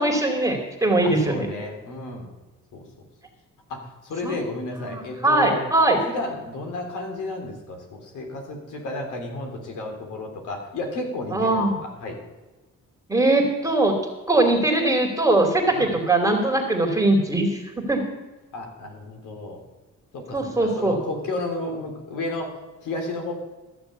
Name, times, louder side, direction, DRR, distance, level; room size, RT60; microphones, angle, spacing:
voice 1, 0.0-1.5 4.2-4.4 4.8-6.0 11.3-11.7 13.1-13.9 14.3-18.0 20.3-21.0, right 2 dB, 10° right, 1 dB, 2.5 m, -21 dB
voice 2, 1.0-2.3 2.7-3.0 3.7-5.6 6.1-12.2 15.7-15.9 18.5-19.6 20.1-22.6 22.8-23.3, left 2 dB, 85° left, 2 dB, 3.3 m, -32 dB
14.0 x 6.9 x 8.0 m, 1.2 s
cardioid pair, 90°, 30 cm